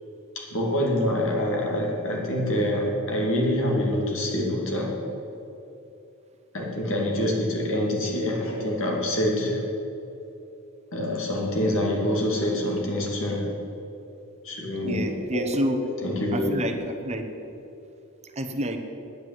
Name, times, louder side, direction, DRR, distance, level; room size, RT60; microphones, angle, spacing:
voice 1, 0.4-4.9 6.5-9.6 10.9-13.4 14.4-15.0 15.3-15.4 15.7-16.5, left 1 dB, 65° left, -1 dB, 2.6 m, -26 dB
voice 2, 14.8-15.8 16.3-17.2 18.4-18.8, right 1 dB, 30° right, 6 dB, 0.9 m, -28 dB
9.5 x 8.7 x 9.1 m, 2.9 s
head